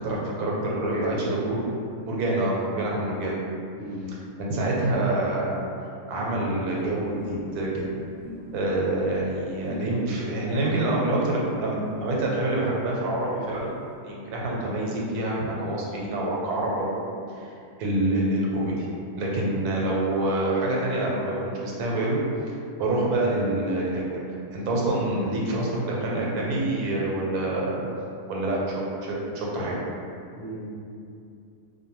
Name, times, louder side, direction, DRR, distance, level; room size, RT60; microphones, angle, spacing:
voice 1, 0.0-1.6 2.0-3.4 4.4-5.7 6.1-7.9 8.5-13.7 14.0-17.0 17.4-17.5 17.8-18.9 19.2-22.2 22.8-24.2 24.5-27.9 28.3-29.8, right 1 dB, 85° right, -3 dB, 1.1 m, -26 dB
voice 2, 0.7-1.2 3.8-4.1 30.3-30.7, left 1 dB, 45° left, -13 dB, 0.6 m, -34 dB
sound 1, 6.8-11.3 12.2-12.3 12.5-12.6 12.9-13.0 13.2-13.8, left 1 dB, 70° right, 0.4 m, -41 dB
2.5 x 2.2 x 2.9 m, 2.5 s
omnidirectional pair, 1.6 m